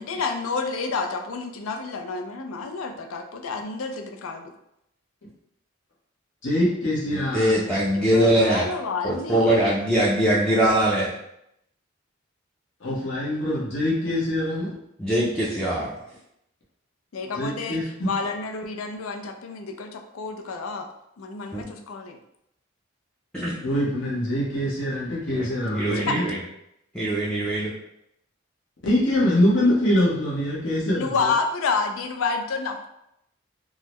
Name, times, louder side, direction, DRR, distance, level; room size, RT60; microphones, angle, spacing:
voice 1, 0.0-4.5 7.9-9.5 17.1-20.9 21.2-22.2 25.9-26.2 31.0-32.9, left 4 dB, 80° left, 4 dB, 0.4 m, -29 dB
voice 2, 6.4-7.6 12.8-14.7 17.3-17.9 23.6-26.2 28.8-31.3, left 1 dB, 60° left, -7 dB, 1.0 m, -24 dB
voice 3, 7.1-8.7 9.0-11.1 15.0-15.9 21.5-21.6 23.3-23.6 25.3-25.5 25.7-26.4 26.9-27.7, right 1 dB, 5° left, -8 dB, 0.4 m, -22 dB
3.7 x 2.0 x 3.0 m, 0.79 s
head